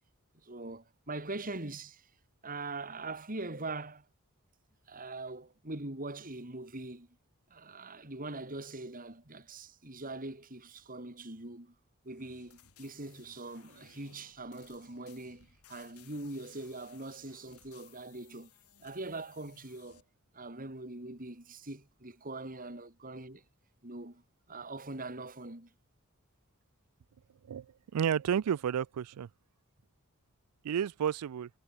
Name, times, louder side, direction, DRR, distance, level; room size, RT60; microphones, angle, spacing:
voice 1, 0.4-2.1 2.4-4.1 4.9-7.2 7.5-11.8 12.0-18.5 18.8-20.0 20.3-23.4 23.8-24.2 24.5-25.7, right 2 dB, 40° right, 3.7 m, -42 dB
sound 1, 12.1-20.0, left 8 dB, 85° left, 7.5 m, -61 dB
voice 2, 27.9-29.3 30.6-31.5, right 8 dB, 90° right, 0.4 m, -31 dB
head